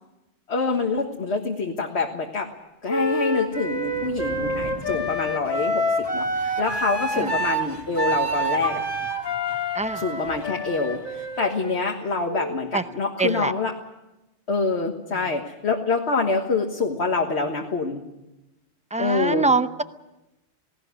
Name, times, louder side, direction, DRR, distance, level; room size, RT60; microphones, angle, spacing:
voice 1, 0.5-2.5 2.8-8.8 10.0-13.7 14.5-18.0 19.0-19.5, left 4 dB, 80° left, 2 dB, 1.8 m, -26 dB
Wind instrument woodwind instrument, 2.9-12.7, equal, 20° left, 1.9 m, -27 dB
Thunder / Rain, 2.9-11.3, right 3 dB, 70° right, 1.8 m, -44 dB
sound 1, 6.0-11.5, left 1 dB, 25° right, 3.7 m, -45 dB
voice 2, 13.2-13.5 15.1-15.3 18.9-19.8, right 3 dB, 10° right, 11 dB, 0.6 m, -24 dB
19.0 x 18.0 x 9.6 m, 1.0 s
omnidirectional pair, 1.1 m